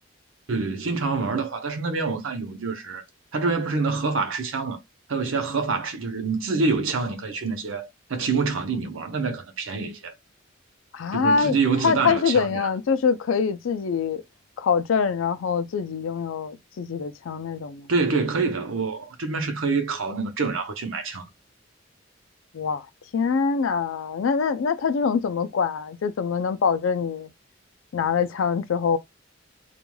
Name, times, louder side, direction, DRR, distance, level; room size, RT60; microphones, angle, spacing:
voice 1, 0.5-3.0 3.3-4.8 5.1-10.1 11.1-12.7 17.9-21.2, right 4 dB, 80° right, 0.7 m, -26 dB
voice 2, 10.9-11.6 11.8-14.2 14.6-17.9 22.5-22.8 23.1-27.3 27.9-29.0, left 5 dB, 75° left, 0.4 m, -24 dB
2.4 x 2.2 x 3.0 m
head